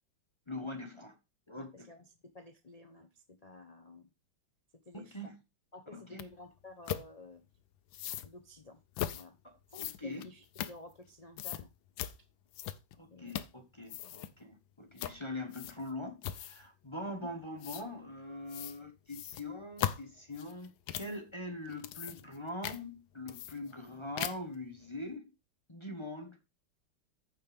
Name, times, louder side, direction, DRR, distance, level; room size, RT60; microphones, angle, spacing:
voice 1, 0.5-1.1 1.5-1.9 4.9-5.4 5.9-6.2 9.4-10.3 13.0-25.3 25.7-26.4, left 1 dB, 20° left, 0.8 m, -43 dB
voice 2, 1.5-3.1 3.4-4.1 4.7-5.3 5.7-7.4 8.2-8.8 9.1-9.4 9.8-11.7 13.1-13.4 14.0-14.2, left 2 dB, 50° left, 0.4 m, -52 dB
sound 1, 6.2-6.3 6.9-7.1 7.9-8.3 8.9-9.2 9.7-11.1 11.4-11.6 12.0-12.1 12.5-13.0 13.3-13.6 13.8-14.3 15.0-15.2 15.5-15.9 16.2-16.7 17.6-17.8 18.5-18.8 19.1-21.2 21.7-22.4 22.6-22.8 23.3-23.9 24.2-24.6, left 11 dB, 90° left, 1.5 m, -38 dB
14.5 x 5.4 x 3.4 m
omnidirectional pair, 2.1 m